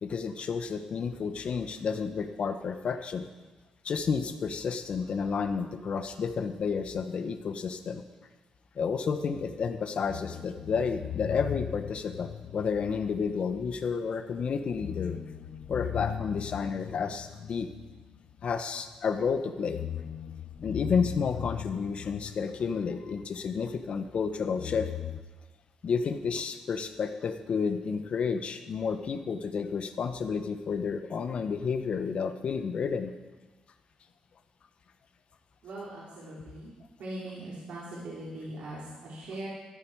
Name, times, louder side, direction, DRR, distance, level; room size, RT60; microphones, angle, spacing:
voice 1, 0.0-3.3 3.8-8.0 8.7-15.2 15.7-17.7 18.4-19.8 20.6-24.9 25.8-33.1, left 5 dB, 55° left, 8 dB, 1.0 m, -31 dB
sound 1, 9.3-14.0 14.3-14.4 14.7-19.0 19.5-23.8 24.5-25.2, left 10 dB, 75° left, 0.7 m, -39 dB
voice 2, 35.6-36.7 37.0-39.5, right 1 dB, 80° right, -7 dB, 3.2 m, -40 dB
13.5 x 11.0 x 4.7 m, 1.2 s
cardioid pair, 100°, 2 cm